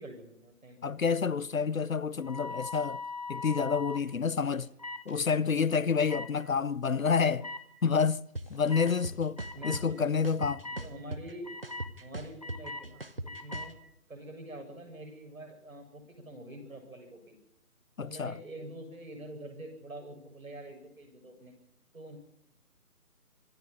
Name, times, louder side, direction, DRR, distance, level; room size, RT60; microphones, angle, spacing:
voice 1, 0.0-0.9 9.5-10.2 10.7-11.5 12.0-13.8 14.1-17.4 18.0-21.5 21.9-22.2, right 1 dB, 60° right, 7.7 m, -46 dB
voice 2, 0.8-3.0 3.3-4.7 5.1-7.5 7.8-8.2 8.5-10.7 18.0-18.4, left 5 dB, 60° left, 0.7 m, -28 dB
sound 1, 2.1-2.3 2.7-3.0 3.3-4.1 4.4-10.0, left 2 dB, 10° left, 2.2 m, -59 dB
sound 2, 2.2-4.0 4.8-5.0 6.1-6.3 7.4-7.6 8.7-8.9 9.4-9.8 10.4-10.8 11.4-11.9 12.4-12.8 13.3-13.7, left 3 dB, 25° left, 1.1 m, -40 dB
sound 3, 8.4-8.5 8.9-9.8 10.2-11.3 11.6-13.7, right 2 dB, 40° right, 0.9 m, -38 dB
25.0 x 11.0 x 9.9 m
figure-of-eight pair, 175°, 46 cm